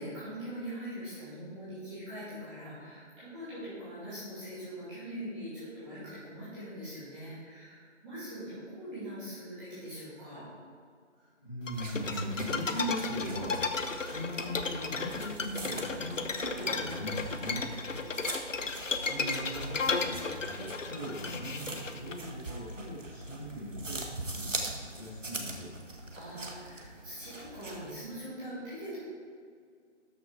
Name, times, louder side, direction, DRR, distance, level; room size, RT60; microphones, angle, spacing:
voice 1, 0.0-10.4 17.8-18.1 26.1-29.0, equal, 5° right, -15 dB, 2.4 m, -42 dB
voice 2, 11.2-17.7 18.8-24.0 24.3-25.7, equal, 15° left, -13 dB, 2.0 m, -39 dB
sound 1, 11.7-22.1, left 4 dB, 85° left, 1.0 m, -34 dB
sound 2, 11.7-27.9, right 2 dB, 90° right, 1.7 m, -43 dB
13.0 x 6.4 x 4.7 m, 2.1 s
figure-of-eight pair, 175°, 37 cm